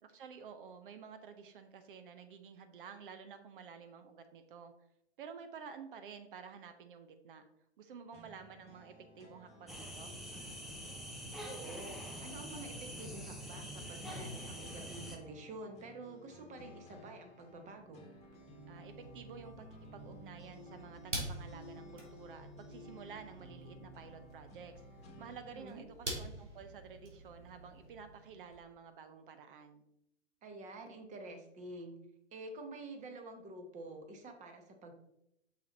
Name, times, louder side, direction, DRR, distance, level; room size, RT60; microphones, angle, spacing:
voice 1, 0.0-4.7 5.2-7.5 7.8-10.1 18.7-24.7 25.2-29.8, right 6 dB, 50° right, 9 dB, 0.7 m, -51 dB
sound 1, 8.1-25.6, left 1 dB, 20° left, 1.4 m, -55 dB
sound 2, 9.7-15.2, equal, ahead, 0.3 m, -45 dB
voice 2, 11.4-18.0 25.5-25.8 30.4-32.0 32.3-34.9, right 2 dB, 20° right, 5 dB, 1.1 m, -48 dB
sound 3, 18.1-28.6, right 1 dB, 85° right, 2.4 m, -48 dB
6.1 x 5.6 x 4.0 m, 0.78 s
figure-of-eight pair, 115°, 35 cm